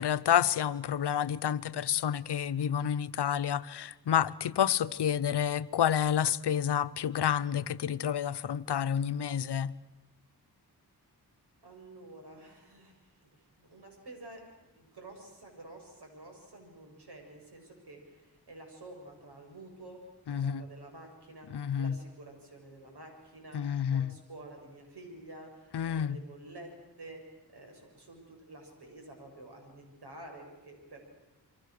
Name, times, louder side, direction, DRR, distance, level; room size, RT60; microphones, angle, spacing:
voice 1, 0.0-9.7 20.3-20.6 21.5-22.0 23.5-24.1 25.7-26.2, left 9 dB, 90° left, 0.8 m, -29 dB
voice 2, 11.6-13.1 13.6-14.4 14.8-20.0 20.3-27.2 27.5-31.0, right 2 dB, 80° right, 7.2 m, -50 dB
28.0 x 24.0 x 6.6 m
wide cardioid pair, 80°, 39 cm